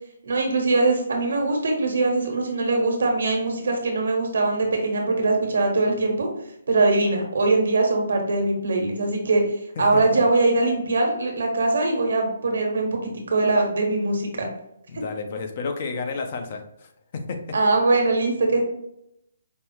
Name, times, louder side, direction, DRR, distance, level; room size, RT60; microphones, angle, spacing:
voice 1, 0.2-6.3 6.7-14.5 17.5-18.6, right 2 dB, 75° right, 2 dB, 1.2 m, -22 dB
voice 2, 9.8-10.2 14.9-17.4, left 4 dB, 40° left, 5 dB, 0.6 m, -31 dB
5.2 x 2.1 x 3.1 m, 0.77 s
hypercardioid pair, 160°, 0 cm